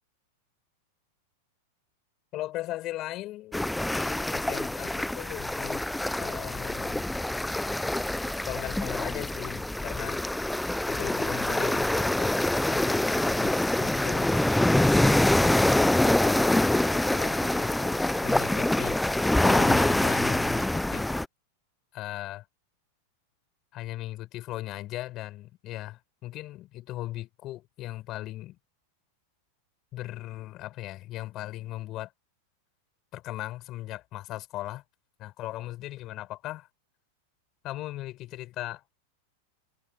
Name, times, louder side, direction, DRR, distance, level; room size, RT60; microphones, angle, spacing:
voice 1, 2.3-5.9 6.1-7.1 8.4-10.2 10.9-14.4 14.8-21.1 21.9-22.4 23.7-28.6 29.9-32.1 33.1-34.8 35.2-36.7 37.6-38.9, left 16 dB, 35° left, 6.9 m, -38 dB
sound 1, 3.5-21.3, left 1 dB, 5° left, 1.1 m, -25 dB
figure-of-eight pair, 90°, 0 cm